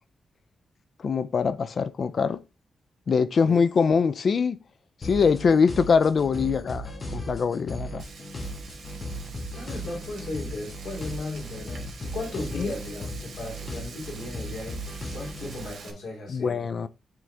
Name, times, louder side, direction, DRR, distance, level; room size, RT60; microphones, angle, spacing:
voice 1, 1.0-2.4 3.1-4.6 5.0-8.0 12.5-12.7 16.3-16.9, left 5 dB, 55° left, 0.4 m, -23 dB
sound 1, 5.0-15.7, equal, 40° left, 1.4 m, -37 dB
Frying (food), 8.0-15.9, right 5 dB, 75° right, 1.6 m, -46 dB
voice 2, 9.5-14.8 15.1-16.7, left 2 dB, 85° left, 2.7 m, -36 dB
7.5 x 3.8 x 3.4 m
cardioid pair, 105°, 0 cm